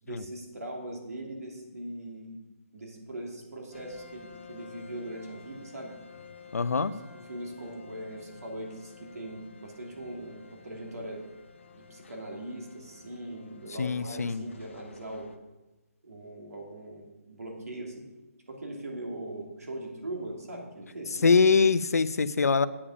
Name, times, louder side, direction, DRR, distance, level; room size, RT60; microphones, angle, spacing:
voice 1, 0.0-2.3 2.7-5.9 7.1-11.2 11.7-15.3 16.0-18.0 18.5-21.4, right 1 dB, 85° right, 0 dB, 2.9 m, -40 dB
sound 1, 3.7-15.4, left 5 dB, 50° left, 1.0 m, -52 dB
voice 2, 6.5-6.9 13.8-14.4 21.2-22.7, left 5 dB, 80° left, 14 dB, 0.6 m, -23 dB
8.7 x 8.7 x 5.0 m, 1.1 s
hypercardioid pair, 170°, 8 cm